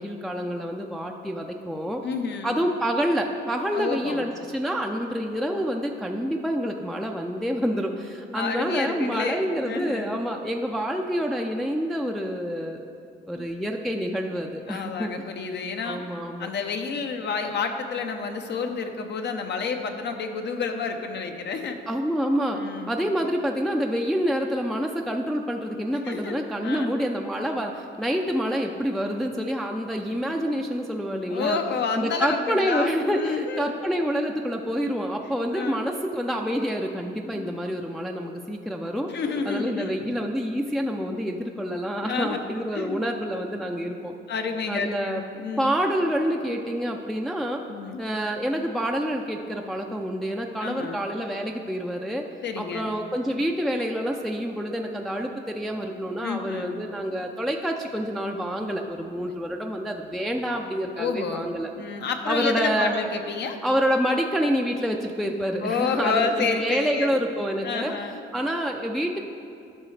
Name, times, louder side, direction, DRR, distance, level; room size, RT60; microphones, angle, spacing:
voice 1, 0.0-2.0 2.4-12.8 13.3-15.1 15.8-16.5 21.9-31.6 31.9-39.1 39.5-44.1 44.7-45.2 45.6-47.6 48.0-52.3 52.6-61.7 62.3-62.9 63.6-67.9 68.3-69.2, equal, ahead, 1 dB, 0.4 m, -27 dB
voice 2, 2.0-2.5 3.7-4.3 8.3-10.2 13.3-13.4 14.7-16.0 16.4-21.8 22.5-22.9 26.0-26.9 31.2-33.7 35.2-35.8 37.3-37.5 39.1-40.1 41.9-42.4 42.7-43.0 44.3-44.9 45.1-45.7 47.7-48.0 50.6-51.0 52.4-52.9 56.2-56.8 61.0-63.6 65.6-67.2 67.6-68.2, left 5 dB, 60° left, 6 dB, 0.8 m, -29 dB
12.5 x 5.5 x 3.3 m, 2.5 s
cardioid pair, 90°, 20 cm